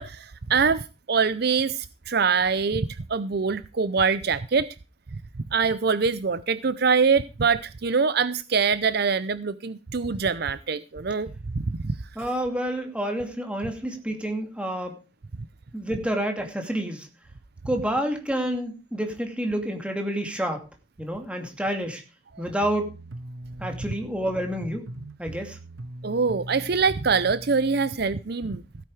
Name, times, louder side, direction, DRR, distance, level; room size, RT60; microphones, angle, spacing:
voice 1, 0.0-4.7 5.5-12.0 22.3-22.4 26.0-28.6, right 5 dB, 55° right, 0.6 m, -24 dB
voice 2, 12.2-14.9 15.7-17.1 17.7-20.6 21.0-22.0 22.4-23.0 23.6-24.9 25.2-25.6, right 1 dB, 5° right, 2.5 m, -28 dB
sound 1, 22.6-27.9, right 1 dB, 90° right, 0.9 m, -40 dB
16.0 x 9.1 x 4.9 m
head